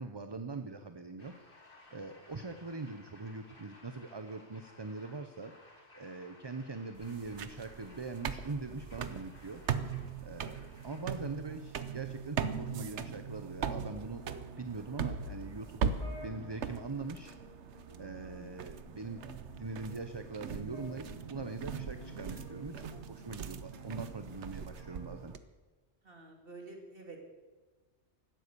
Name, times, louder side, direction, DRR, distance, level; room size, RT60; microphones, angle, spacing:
voice 1, 0.0-1.3 1.9-5.5 5.9-9.6 10.2-10.6 10.8-14.2 14.6-15.8 16.2-17.4 18.0-19.2 19.5-25.3, right 3 dB, 25° right, 8 dB, 0.7 m, -42 dB
sound 1, 1.2-11.4, left 2 dB, 50° left, 2.5 m, -59 dB
sound 2, 7.0-25.4, right 6 dB, 85° right, 1.2 m, -40 dB
voice 2, 10.3-10.7 18.1-18.5 26.0-27.2, right 3 dB, 55° right, 1 dB, 2.4 m, -51 dB
sound 3, 13.2-23.4 23.7-25.1, left 1 dB, 30° left, 3.4 m, -54 dB
16.5 x 12.0 x 6.9 m, 1.3 s
omnidirectional pair, 1.1 m